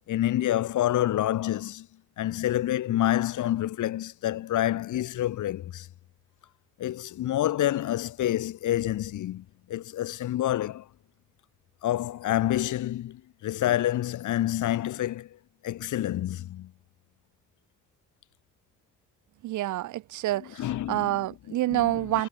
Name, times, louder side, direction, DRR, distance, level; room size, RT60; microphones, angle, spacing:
voice 1, 0.1-1.9 2.2-5.9 6.8-10.9 11.8-15.3 15.6-16.7 20.6-21.2 21.5-22.2, left 13 dB, 75° left, 3.0 m, -28 dB
voice 2, 19.4-20.6 20.9-22.3, right 15 dB, 75° right, 0.8 m, -27 dB
cardioid pair, 90°, 30 cm